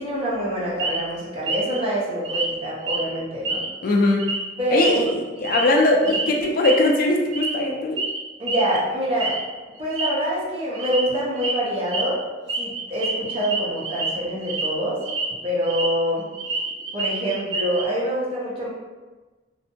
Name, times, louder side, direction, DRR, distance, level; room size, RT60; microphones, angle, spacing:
voice 1, 0.0-3.6 4.6-5.5 8.4-9.3 9.8-12.2 12.6-15.0 15.4-16.2 16.9-18.7, equal, 30° right, -6 dB, 0.6 m, -26 dB
sound 1, 0.8-1.1 1.5-1.8 2.2-2.5 2.8-3.1 3.4-3.9 4.2-4.4 4.8-5.7 6.0-6.3 6.6-6.9 7.3-7.7 8.0-8.2 8.5-8.8 9.2-9.4 9.8-10.1 10.8-11.0 11.4-11.5 11.9-12.0 12.5-14.1 14.4-14.7 15.0-15.9 16.2-17.9, right 3 dB, 75° right, 0.4 m, -27 dB
voice 2, 3.8-4.3 4.7-8.0, left 2 dB, 50° left, 0 dB, 0.3 m, -20 dB
2.7 x 2.1 x 2.5 m, 1.3 s
head